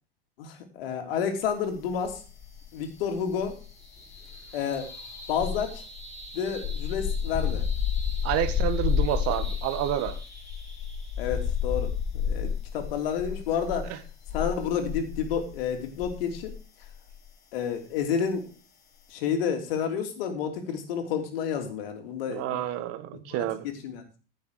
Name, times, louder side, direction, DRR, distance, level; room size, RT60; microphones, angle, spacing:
voice 1, 0.4-2.2 2.7-3.6 4.5-4.9 5.3-5.8 6.3-7.6 11.2-14.0 14.3-16.5 17.5-18.4 19.1-22.6 23.3-24.2, left 7 dB, 70° left, 3.2 m, -30 dB
sound 1, 2.0-2.8 3.0-16.6 16.8-17.1, left 8 dB, 30° left, 3.7 m, -31 dB
sound 2, 2.0-14.7, equal, 5° left, 6.9 m, -47 dB
voice 2, 8.2-10.2 22.3-23.7, right 12 dB, 55° right, 1.7 m, -29 dB
15.0 x 7.2 x 4.9 m
hypercardioid pair, 90°, 29 cm